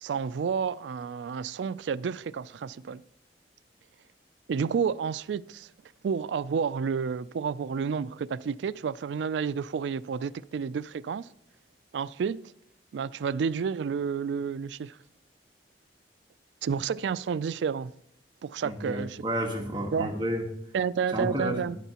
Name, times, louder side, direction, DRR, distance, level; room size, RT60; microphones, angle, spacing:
voice 1, 0.0-3.0 4.5-5.7 6.0-11.3 11.9-12.5 12.9-15.0 16.6-17.9 18.4-19.2 19.9-20.1 20.7-21.8, right 6 dB, 85° right, 0.3 m, -30 dB
voice 2, 18.6-20.4 21.1-21.6, equal, 25° right, 1.4 m, -31 dB
13.5 x 10.0 x 2.9 m
head